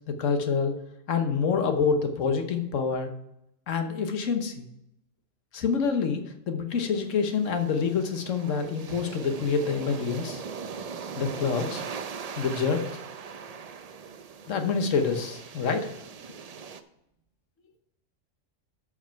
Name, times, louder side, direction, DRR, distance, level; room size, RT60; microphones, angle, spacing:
voice 1, 0.1-0.8 1.1-3.1 3.7-4.7 5.5-10.4 11.2-11.8 12.4-12.8 14.5-15.9, left 5 dB, 80° left, 6 dB, 1.4 m, -27 dB
sound 1, 6.7-16.8, right 6 dB, 55° right, 0.4 m, -40 dB
voice 2, 9.8-10.9 11.2-11.4, right 3 dB, 40° right, -4 dB, 1.2 m, -51 dB
13.0 x 5.0 x 4.5 m, 0.82 s
omnidirectional pair, 1.3 m